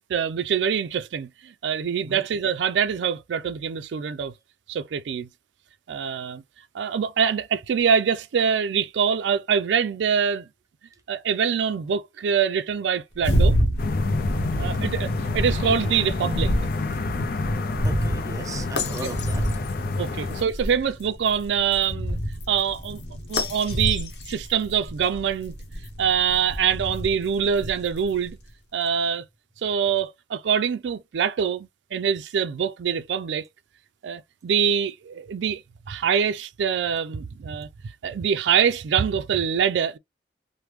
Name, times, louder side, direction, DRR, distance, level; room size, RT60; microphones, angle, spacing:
voice 1, 0.0-4.3 4.7-5.3 5.9-6.4 6.7-10.5 11.1-13.6 14.6-16.5 19.0-19.1 20.0-22.2 22.5-23.0 23.3-25.5 26.0-28.4 28.7-29.2 29.6-33.5 34.0-35.6 35.9-37.7 38.0-40.0, right 7 dB, 85° right, 0.4 m, -24 dB
sound 1, 13.1-28.3, equal, 70° left, 0.8 m, -28 dB
sound 2, 13.8-20.4, left 3 dB, 55° left, 0.5 m, -28 dB
voice 2, 14.5-14.9 17.8-19.4, right 2 dB, 20° right, 0.6 m, -38 dB
3.3 x 2.1 x 3.0 m
head